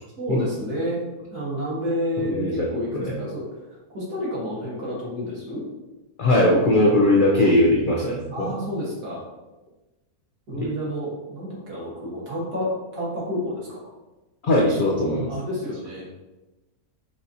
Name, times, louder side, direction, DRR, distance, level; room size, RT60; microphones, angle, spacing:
voice 1, 0.2-1.0 1.3-3.4 3.9-5.6 8.3-9.3 10.5-13.9 15.3-16.1, equal, 85° right, -5 dB, 2.0 m, -30 dB
voice 2, 2.2-3.1 6.2-8.5 10.6-10.7 14.4-15.3, left 1 dB, 80° left, -2 dB, 0.4 m, -20 dB
6.0 x 2.6 x 2.8 m, 1.1 s
omnidirectional pair, 1.6 m